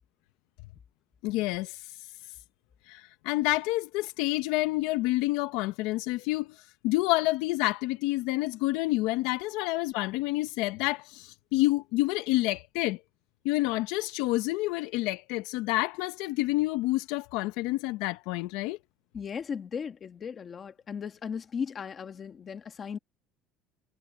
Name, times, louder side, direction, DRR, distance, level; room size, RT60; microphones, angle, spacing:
voice 1, 1.2-1.9 2.9-6.6 6.8-13.0 13.4-18.8, left 19 dB, 80° left, 0.7 m, -28 dB
voice 2, 19.1-23.0, left 6 dB, 25° left, 1.4 m, -36 dB
cardioid pair, 180°, 0 cm